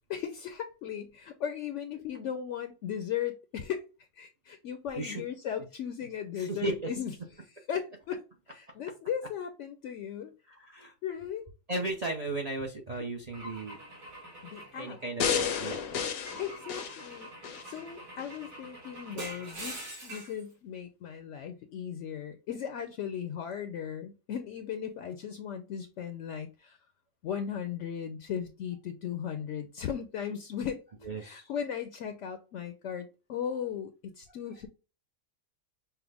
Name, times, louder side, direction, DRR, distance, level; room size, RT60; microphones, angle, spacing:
voice 1, 0.1-3.8 4.2-7.1 7.7-8.2 8.5-10.3 11.0-11.4 14.4-15.0 16.4-26.8 27.2-30.8 31.2-34.7, left 8 dB, 70° left, 8 dB, 0.8 m, -37 dB
voice 2, 6.3-6.9 10.5-10.9 11.7-13.8 14.8-15.8 31.0-31.5, right 2 dB, 40° right, 2 dB, 0.6 m, -35 dB
Car / Engine / Glass, 13.3-15.6 16.3-20.4, right 1 dB, 80° right, 2.4 m, -45 dB
sound 1, 15.2-17.7 18.2-18.3, left 7 dB, 85° left, 1.1 m, -32 dB
5.7 x 2.1 x 3.3 m, 0.32 s
omnidirectional pair, 1.4 m